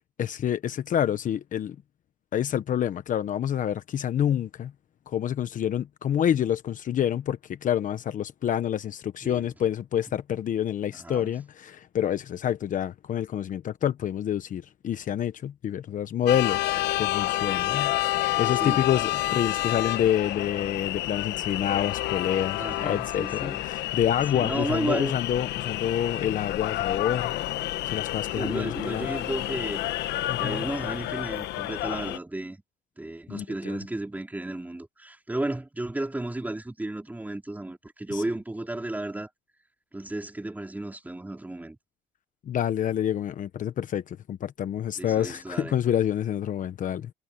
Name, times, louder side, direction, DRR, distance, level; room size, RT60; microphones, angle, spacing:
voice 1, 0.2-1.8 2.3-4.7 5.1-16.7 17.0-27.3 27.8-29.1 30.3-30.6 33.3-33.8 38.1-38.2 42.4-47.1, left 10 dB, 50° left, 1.0 m, -28 dB
voice 2, 11.0-11.3 18.6-19.1 22.6-23.6 24.3-25.2 28.4-29.8 30.4-32.6 33.0-39.3 39.9-41.8 45.0-45.8, right 2 dB, 10° right, 4.0 m, -33 dB
sound 1, 16.3-32.2, left 16 dB, 80° left, 1.2 m, -29 dB
cardioid pair, 110°, 17 cm